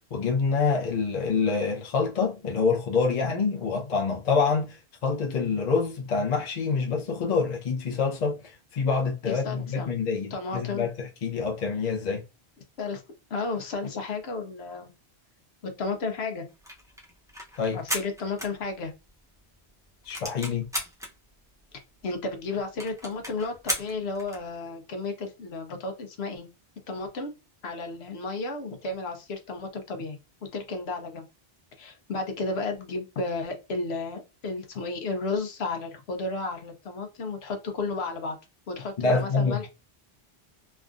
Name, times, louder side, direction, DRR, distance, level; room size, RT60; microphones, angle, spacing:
voice 1, 0.1-12.2 17.6-17.8 20.1-20.7 39.0-39.6, left 5 dB, 45° left, 0.8 m, -26 dB
voice 2, 9.2-9.9 10.3-10.9 12.8-13.0 13.3-14.9 15.6-16.5 17.7-18.9 22.0-26.5 26.9-27.3 27.6-30.2 30.5-31.3 31.8-38.4 38.7-39.7, left 3 dB, 75° left, 1.0 m, -33 dB
sound 1, 16.5-19.2 19.5-19.6 19.8-21.1 21.7-21.8 22.0-22.1 22.4-22.5 22.8-24.5, equal, 5° right, 0.5 m, -35 dB
3.4 x 2.3 x 2.4 m
omnidirectional pair, 1.1 m